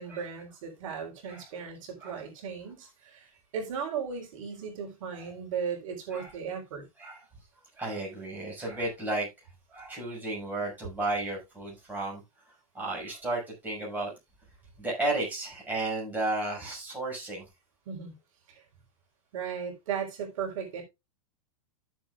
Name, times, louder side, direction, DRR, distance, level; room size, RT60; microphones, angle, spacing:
voice 1, 0.0-6.9 17.9-18.2 18.5-18.6 19.3-20.8, right 7 dB, 60° right, 3.8 m, -36 dB
voice 2, 7.8-9.3 9.7-12.2 12.7-14.1 14.8-17.4, right 2 dB, 10° right, 6.0 m, -33 dB
14.0 x 7.4 x 2.3 m
supercardioid pair, 160°, 19 cm